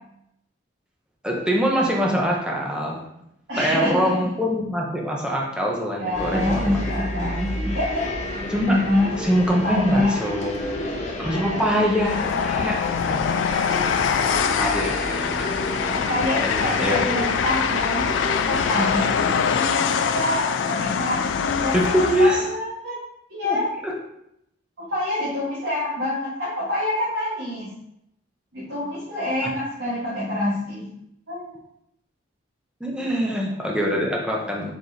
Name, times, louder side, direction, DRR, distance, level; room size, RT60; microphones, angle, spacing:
voice 1, 1.2-3.0 3.6-6.6 8.5-8.8 9.2-13.6 14.0-15.7 16.4-17.0 21.7-22.5 23.4-24.0 29.4-29.5 32.8-34.7, equal, 5° right, -2 dB, 0.6 m, -24 dB
voice 2, 3.5-4.3 6.0-8.3 8.7-9.1 9.6-10.2 11.2-11.8 15.9-18.1 18.4-23.0 23.3-23.7 24.8-27.7 28.5-30.9 31.3-31.6 33.0-33.3, left 1 dB, 65° right, -9 dB, 1.3 m, -26 dB
sound 1, 6.1-19.0, left 1 dB, 35° left, 0.7 m, -31 dB
Train, 12.0-22.5, left 7 dB, 75° left, 0.3 m, -24 dB
4.8 x 4.0 x 2.6 m, 0.79 s
head